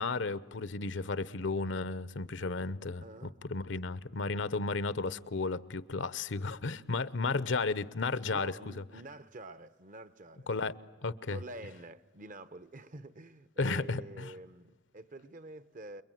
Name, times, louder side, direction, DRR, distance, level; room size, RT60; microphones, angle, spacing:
voice 1, 0.0-8.8 10.5-10.7 11.0-11.4 13.6-14.3, left 3 dB, 70° left, 0.8 m, -33 dB
voice 2, 3.0-3.4 8.3-10.5 11.3-16.0, right 2 dB, 45° right, 0.8 m, -48 dB
28.5 x 22.0 x 9.2 m
head